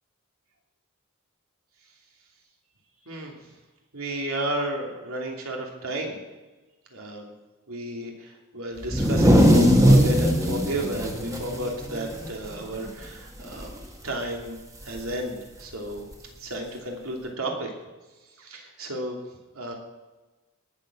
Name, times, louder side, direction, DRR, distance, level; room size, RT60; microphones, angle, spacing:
voice 1, 3.9-6.2 6.9-7.3 7.7-13.7 14.0-14.6 14.8-16.0 16.4-17.7 18.4-19.2 19.5-19.7, right 1 dB, 75° right, 1 dB, 2.9 m, -32 dB
sound 1, 8.8-12.5 12.9-13.0 13.4-13.8 15.0-15.1 16.1-16.2, equal, 15° right, 1.5 m, -19 dB
19.0 x 7.6 x 6.1 m, 1.2 s
head